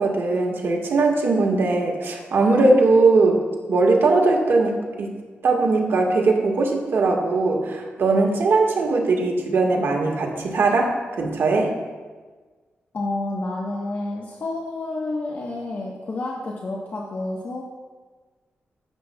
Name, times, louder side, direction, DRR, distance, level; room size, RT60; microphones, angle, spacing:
voice 1, 0.0-3.4 3.7-5.1 5.4-11.7, right 3 dB, 70° right, 1 dB, 1.5 m, -20 dB
voice 2, 12.9-17.6, left 2 dB, 50° left, -3 dB, 1.1 m, -29 dB
15.0 x 7.3 x 2.3 m, 1.4 s
cardioid pair, 90°, 4 cm